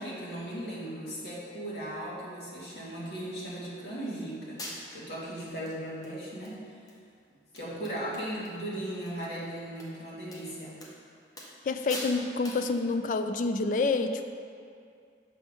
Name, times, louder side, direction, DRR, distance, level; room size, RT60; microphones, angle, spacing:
voice 1, 0.0-6.6 7.5-10.8, right 1 dB, 70° left, -7 dB, 1.7 m, -37 dB
sound 1, 4.0-4.1 4.6-5.1 5.7-5.8 6.0-6.6 6.9-7.0 7.3-7.4 7.6-8.6 8.8-9.1 9.8-9.9 10.3-10.4 10.8-11.0 11.4-11.6 11.9-12.2 12.4-12.7, left 1 dB, 20° left, 0.8 m, -42 dB
voice 2, 11.6-14.2, left 3 dB, 45° left, 8 dB, 0.3 m, -28 dB
6.9 x 3.5 x 5.3 m, 2.3 s
head